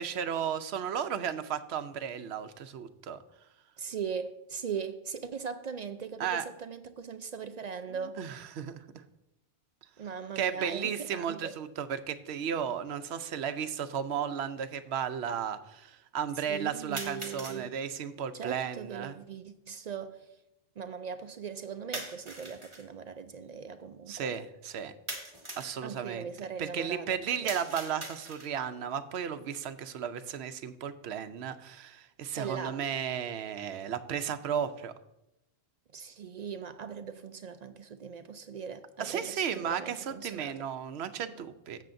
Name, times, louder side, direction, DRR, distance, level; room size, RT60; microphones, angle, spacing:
voice 1, 0.0-3.2 6.2-6.4 8.2-8.8 10.4-19.1 24.1-24.9 25.6-26.3 26.6-34.9 39.0-41.8, right 8 dB, 75° right, 0.8 m, -34 dB
voice 2, 3.8-8.2 10.0-11.6 16.4-17.7 18.3-20.3 20.8-24.3 25.8-27.5 32.3-32.8 35.9-40.7, right 6 dB, 55° right, 0.4 m, -40 dB
sound 1, 12.6-12.7 13.7-13.8 17.0-17.6 21.9-22.9 25.1-25.8 27.5-28.6, right 2 dB, 25° right, 1.5 m, -41 dB
13.0 x 7.5 x 2.6 m
omnidirectional pair, 1.1 m